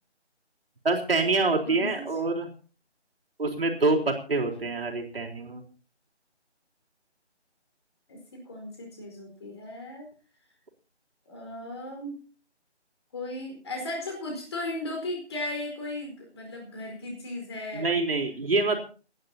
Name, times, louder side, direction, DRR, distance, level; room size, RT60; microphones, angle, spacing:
voice 1, 0.8-2.5 3.4-5.6 17.7-18.8, right 3 dB, 55° right, 0 dB, 4.0 m, -26 dB
voice 2, 1.6-2.0 8.1-10.1 11.3-12.2 13.1-17.9 18.6-18.8, left 2 dB, 25° left, 1 dB, 4.7 m, -36 dB
30.0 x 11.0 x 2.8 m, 0.36 s
figure-of-eight pair, 170°, 35 cm